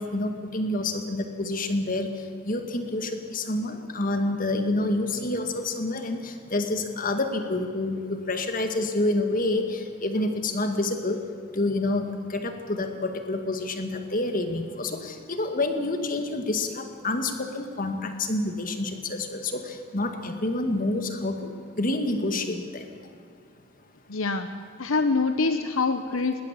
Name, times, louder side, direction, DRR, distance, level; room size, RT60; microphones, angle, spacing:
voice 1, 0.0-2.1 2.4-11.2 11.5-21.5 21.8-22.9, left 2 dB, 40° left, 6 dB, 2.0 m, -28 dB
voice 2, 24.1-24.5 24.8-26.4, left 4 dB, 70° left, 9 dB, 1.0 m, -25 dB
20.0 x 19.5 x 8.4 m, 2.3 s
head